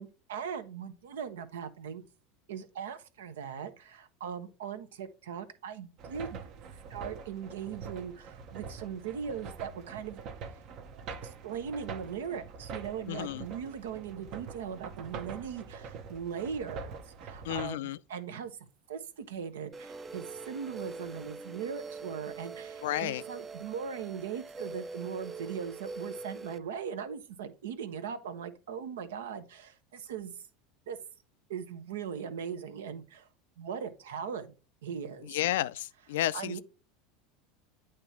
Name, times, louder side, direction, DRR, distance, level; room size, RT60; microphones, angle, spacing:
voice 1, 0.0-2.0 2.5-6.4 6.9-10.2 11.2-18.6 18.9-30.4 30.9-31.0 31.5-33.3 33.6-34.5 34.8-35.3 36.3-36.6, right 7 dB, 85° right, 0.8 m, -39 dB
sound 1, 6.0-17.6, right 5 dB, 55° right, 0.8 m, -44 dB
voice 2, 13.1-13.4 17.4-18.0 22.8-23.2 35.2-36.6, left 14 dB, 80° left, 0.3 m, -32 dB
sound 2, 19.7-26.6, right 4 dB, 25° right, 0.5 m, -43 dB
8.7 x 3.0 x 4.6 m
hypercardioid pair, 95°, 0 cm